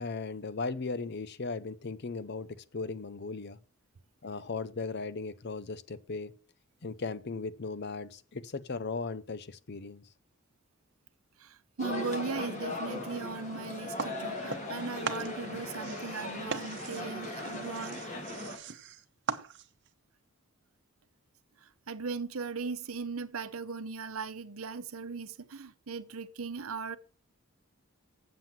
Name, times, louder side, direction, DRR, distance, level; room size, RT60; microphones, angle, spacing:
voice 1, 0.0-3.6 4.2-6.3 6.8-10.0, left 4 dB, 50° left, 0.6 m, -37 dB
voice 2, 11.4-18.3 21.6-27.0, right 4 dB, 80° right, 0.8 m, -38 dB
sound 1, 11.8-18.6, left 2 dB, 35° left, 2.0 m, -38 dB
sound 2, 14.0-14.8 15.0-19.9, right 5 dB, 55° right, 0.9 m, -39 dB
7.6 x 7.6 x 7.4 m
head